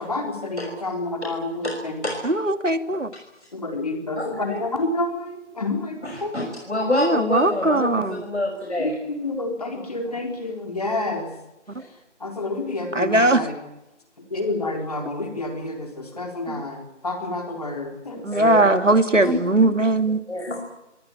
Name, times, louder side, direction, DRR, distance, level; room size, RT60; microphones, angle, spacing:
voice 1, 0.0-2.0 3.5-6.5 8.8-11.3 12.2-13.6 14.3-18.9 19.2-19.7 20.5-20.6, left 2 dB, 30° left, 3 dB, 4.0 m, -29 dB
voice 2, 2.2-3.1 6.9-8.2 12.9-13.4 16.5-16.6 18.2-20.2, right 2 dB, 90° right, 10 dB, 2.3 m, -20 dB
voice 3, 4.2-4.6 6.0-8.9 11.8-11.9 18.3-18.9 19.2-19.3 20.3-20.6, left 1 dB, 65° left, 2 dB, 6.0 m, -27 dB
24.5 x 19.5 x 8.8 m, 0.94 s
figure-of-eight pair, 170°, 36 cm